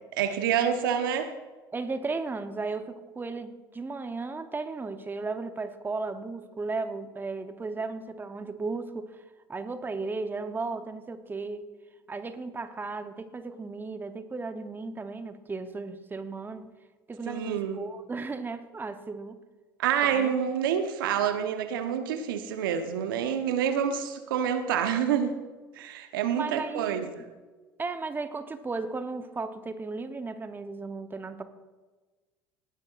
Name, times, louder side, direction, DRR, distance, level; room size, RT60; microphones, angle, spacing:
voice 1, 0.2-1.3 17.3-17.8 19.8-25.3 25.7-27.3, right 8 dB, 75° right, 8 dB, 1.0 m, -27 dB
voice 2, 1.7-9.2 9.5-11.7 12.1-16.7 17.1-19.4 20.0-20.3 26.3-27.0 27.8-31.4, right 3 dB, 15° right, 9 dB, 0.9 m, -35 dB
18.0 x 10.5 x 2.5 m, 1.3 s
hypercardioid pair, 65°, 12 cm